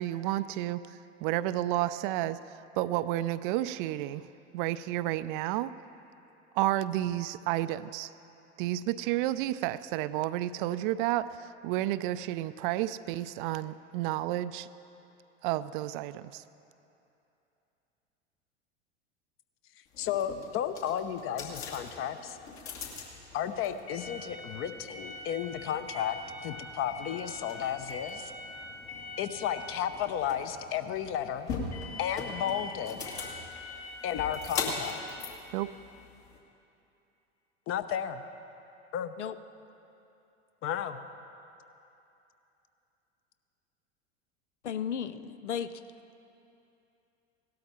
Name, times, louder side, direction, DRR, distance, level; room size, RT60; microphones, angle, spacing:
voice 1, 0.0-4.3 4.5-5.7 6.5-8.1 8.6-14.7 15.4-16.4 35.5-35.7, right 14 dB, 50° right, 14 dB, 0.4 m, -31 dB
sound 1, 19.9-36.4, left 4 dB, 60° left, 2.6 m, -40 dB
voice 2, 20.0-22.4 23.3-28.3 29.2-31.5 32.0-33.0 34.0-35.0 37.7-38.2 38.9-39.1 40.6-41.0, left 9 dB, 40° left, 10 dB, 0.8 m, -33 dB
voice 3, 44.6-45.7, left 8 dB, 85° left, 13 dB, 0.5 m, -34 dB
17.0 x 12.5 x 4.4 m, 2.8 s
hypercardioid pair, 85°, 34 cm